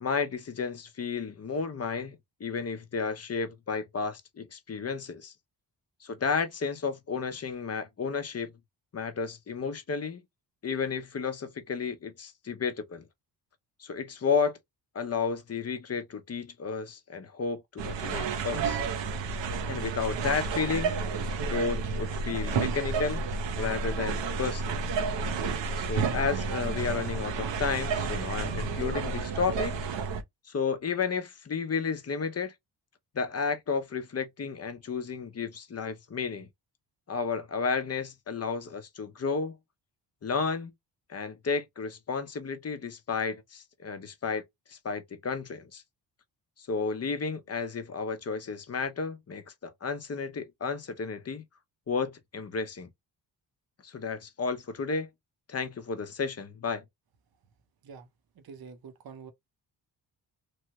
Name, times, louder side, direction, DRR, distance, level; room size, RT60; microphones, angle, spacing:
voice 1, 0.0-5.3 6.0-8.5 8.9-10.2 10.6-13.0 13.8-14.6 14.9-18.8 19.7-20.9 21.5-23.2 23.6-24.9 25.8-29.8 30.5-32.5 33.1-36.5 37.1-39.6 40.2-40.7 41.1-44.4 44.7-45.8 46.7-51.4 51.9-52.9 53.8-55.1 55.5-56.8, left 5 dB, 35° left, 0.7 m, -32 dB
sound 1, 17.8-30.2, right 4 dB, 80° right, 0.8 m, -31 dB
voice 2, 58.3-59.3, right 5 dB, 55° right, 0.9 m, -46 dB
3.1 x 2.2 x 2.9 m
cardioid pair, 90°, 43 cm